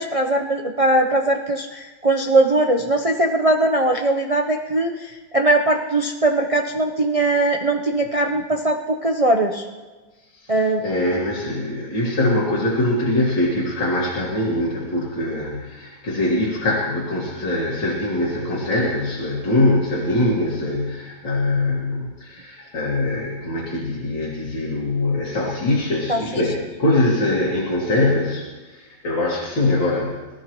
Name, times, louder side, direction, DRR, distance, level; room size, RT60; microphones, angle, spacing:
voice 1, 0.0-9.6 10.5-10.8 26.1-26.4, right 2 dB, 60° right, 2 dB, 0.3 m, -20 dB
voice 2, 10.8-30.2, left 1 dB, 80° left, -5 dB, 2.8 m, -22 dB
22.5 x 13.5 x 3.1 m, 1.3 s
omnidirectional pair, 2.0 m